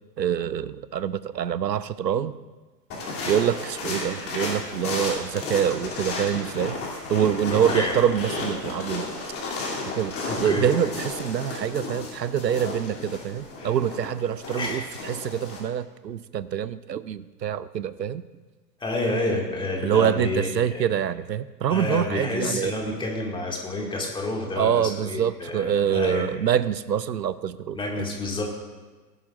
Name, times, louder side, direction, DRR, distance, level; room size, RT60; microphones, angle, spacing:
voice 1, 0.2-2.3 3.3-6.8 7.1-9.1 10.0-18.2 19.8-22.7 24.6-27.8, right 9 dB, 80° right, 17 dB, 0.6 m, -25 dB
sound 1, 2.9-15.6, left 2 dB, 25° left, 2.9 m, -33 dB
voice 2, 7.5-7.9 10.2-10.7 14.5-14.8 18.8-20.5 20.7-20.9 21.7-26.3 27.7-28.4, left 2 dB, 10° left, -1 dB, 2.1 m, -29 dB
18.0 x 11.5 x 2.5 m, 1.3 s
figure-of-eight pair, 100°, 50 cm